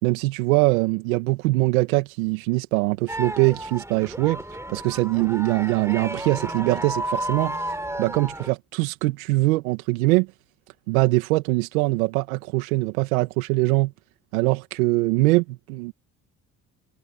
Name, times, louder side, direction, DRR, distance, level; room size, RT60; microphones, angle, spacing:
voice 1, 0.0-4.4 4.7-7.6 8.0-10.3 10.9-13.9 14.3-15.9, right 22 dB, 85° right, 2.0 m, -22 dB
sound 1, 3.1-8.5, right 1 dB, 5° right, 4.2 m, -32 dB
hypercardioid pair, 60°, 41 cm